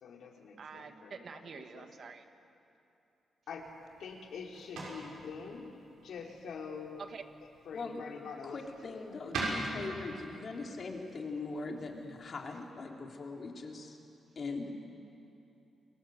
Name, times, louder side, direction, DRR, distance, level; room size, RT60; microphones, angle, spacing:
voice 1, 0.0-1.2 1.7-1.8 3.5-3.6 4.0-5.7 6.0-7.2 7.7-8.6 8.8-9.0, left 5 dB, 75° left, 0 dB, 3.5 m, -45 dB
voice 2, 0.6-2.2 7.0-7.2, right 5 dB, 55° right, 7 dB, 1.7 m, -47 dB
sound 1, 3.5-12.7, right 2 dB, 90° right, 6.5 m, -44 dB
voice 3, 8.4-14.0 14.3-14.8, left 3 dB, 50° left, 1 dB, 3.4 m, -41 dB
28.0 x 21.0 x 7.9 m, 2.9 s
cardioid pair, 95°, 0 cm